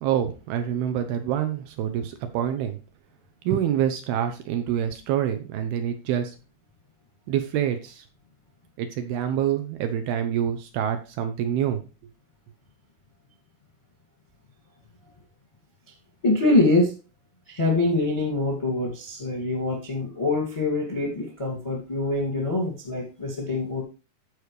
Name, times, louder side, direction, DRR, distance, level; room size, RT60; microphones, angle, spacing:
voice 1, 0.0-2.8 3.5-6.3 7.3-8.1 8.8-11.8, right 10 dB, 75° right, 8 dB, 2.4 m, -26 dB
voice 2, 16.2-16.9 17.5-23.8, left 2 dB, 20° left, 1 dB, 0.9 m, -24 dB
14.0 x 4.8 x 3.3 m, 0.31 s
omnidirectional pair, 4.9 m